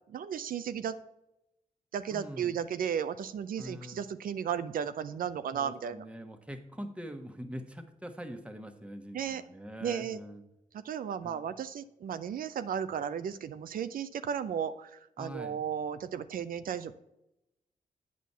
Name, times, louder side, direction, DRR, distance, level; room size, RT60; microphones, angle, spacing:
voice 1, 0.1-0.9 1.9-6.0 9.1-9.4 9.8-10.2 10.7-16.9, right 8 dB, 85° right, 11 dB, 0.5 m, -34 dB
voice 2, 2.1-2.6 3.6-4.0 5.5-10.4 11.2-11.4 15.2-15.6, equal, 10° right, 6 dB, 1.3 m, -43 dB
8.3 x 6.0 x 5.5 m, 0.86 s
cardioid pair, 75°, 14 cm